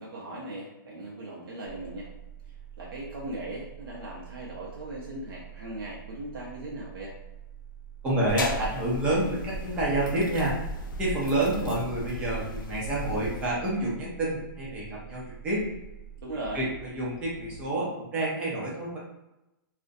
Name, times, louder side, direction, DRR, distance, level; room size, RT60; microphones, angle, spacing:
voice 1, 0.0-2.1 2.5-7.1 16.2-16.6, right 1 dB, 85° right, -4 dB, 0.7 m, -38 dB
sound 1, 1.6-17.7, right 8 dB, 30° left, 0.7 m, -46 dB
voice 2, 8.0-10.5 11.0-15.7 16.5-19.0, right 1 dB, 10° right, -6 dB, 0.5 m, -28 dB
sound 2, 8.3-13.5, equal, 65° left, 0.4 m, -36 dB
2.5 x 2.1 x 2.5 m, 0.93 s
hypercardioid pair, 170°, 12 cm